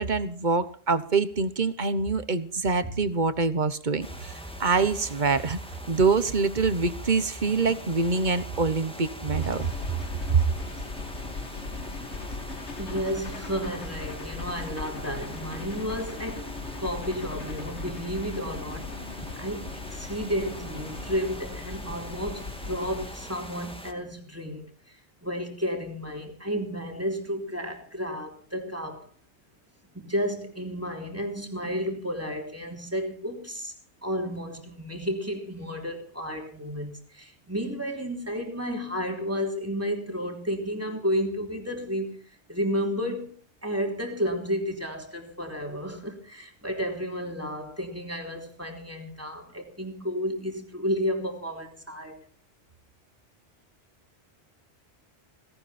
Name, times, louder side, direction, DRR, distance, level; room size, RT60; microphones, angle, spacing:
voice 1, 0.0-4.3 4.6-5.6 5.9-9.7 10.3-10.4, right 4 dB, 45° right, 1.3 m, -25 dB
sound 1, 4.0-23.9, left 1 dB, 5° left, 2.0 m, -42 dB
sound 2, 9.3-23.1, left 3 dB, 90° left, 1.9 m, -38 dB
voice 2, 12.8-29.1 29.9-33.7 34.0-43.3 43.6-52.2, equal, 15° right, 3.3 m, -32 dB
18.0 x 17.0 x 4.4 m
omnidirectional pair, 1.1 m